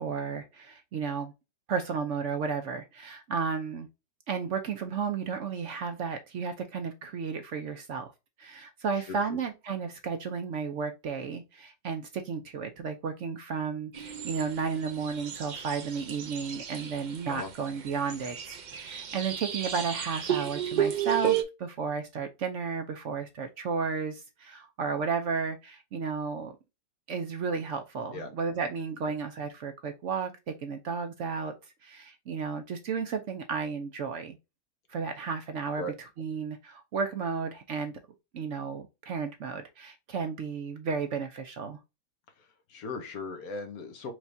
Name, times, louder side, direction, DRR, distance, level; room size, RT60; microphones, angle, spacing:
voice 1, 0.0-1.3 1.7-3.9 4.3-8.1 8.4-26.5 27.1-31.5 31.8-34.4 34.9-35.8 36.2-37.9 38.3-41.8, right 5 dB, 60° right, 0.9 m, -33 dB
sound 1, 13.9-21.4, right 10 dB, 85° right, 0.4 m, -33 dB
voice 2, 42.4-44.1, left 3 dB, 70° left, 1.4 m, -38 dB
4.7 x 3.2 x 2.6 m
omnidirectional pair, 1.7 m